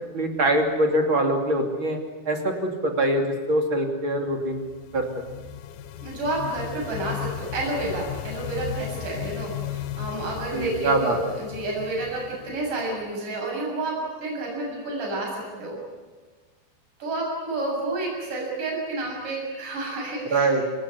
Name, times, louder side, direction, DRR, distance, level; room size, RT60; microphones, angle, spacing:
voice 1, 0.1-2.0 2.2-4.6 4.9-5.1 10.5-11.2 20.2-20.6, right 1 dB, 35° right, 3 dB, 3.0 m, -23 dB
sound 1, 4.4-13.1, left 10 dB, 80° left, 1.8 m, -36 dB
voice 2, 6.0-15.8 17.0-20.7, right 2 dB, 50° right, -2 dB, 8.8 m, -30 dB
28.5 x 18.5 x 9.8 m, 1.4 s
omnidirectional pair, 4.9 m